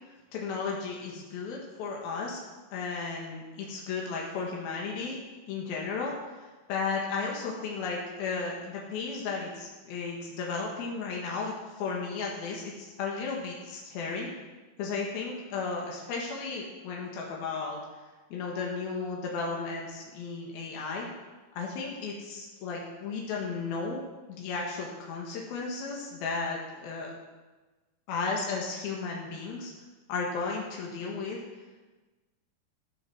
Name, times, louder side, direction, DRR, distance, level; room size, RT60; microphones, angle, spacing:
voice 1, 0.3-2.4 2.7-5.2 5.5-6.2 6.7-14.3 14.8-17.8 18.3-21.1 21.6-24.0 24.3-27.1 28.1-29.7 30.1-31.4, left 4 dB, 90° left, -2 dB, 3.5 m, -34 dB
15.5 x 7.8 x 6.3 m, 1.2 s
omnidirectional pair, 4.1 m